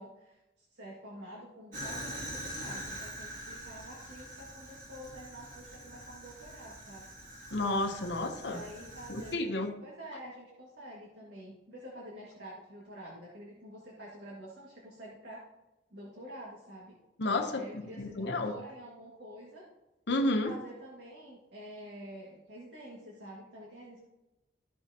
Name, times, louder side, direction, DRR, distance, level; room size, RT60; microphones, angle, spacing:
voice 1, 0.0-7.1 8.4-9.6 9.8-15.4 15.9-17.0 17.5-19.6 20.3-24.1, equal, 60° right, -4 dB, 1.9 m, -48 dB
Fire, 1.7-9.4, equal, 45° right, 2.5 m, -44 dB
voice 2, 7.5-8.6 9.1-9.7 17.2-18.5 20.1-20.5, left 2 dB, 65° left, 5 dB, 0.8 m, -31 dB
13.5 x 5.9 x 2.9 m, 1.0 s
head